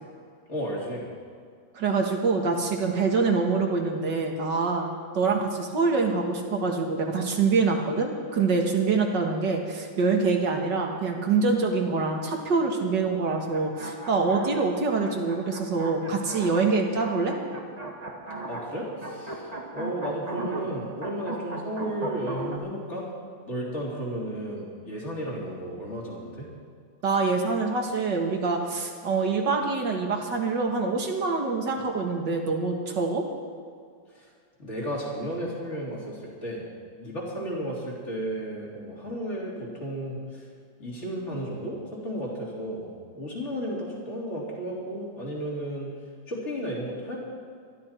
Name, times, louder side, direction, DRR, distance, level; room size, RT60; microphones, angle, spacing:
voice 1, 0.5-1.1 18.4-23.1 23.5-26.5 34.1-34.3 34.6-36.6 37.0-40.5 40.8-45.9 46.3-47.2, equal, 35° left, -4 dB, 3.7 m, -33 dB
voice 2, 1.7-4.9 5.1-17.3 27.0-33.3, right 4 dB, 65° right, 2 dB, 2.3 m, -25 dB
sound 1, 13.2-22.6, right 2 dB, 25° right, 1.3 m, -38 dB
22.0 x 13.0 x 4.5 m, 2.2 s
omnidirectional pair, 2.1 m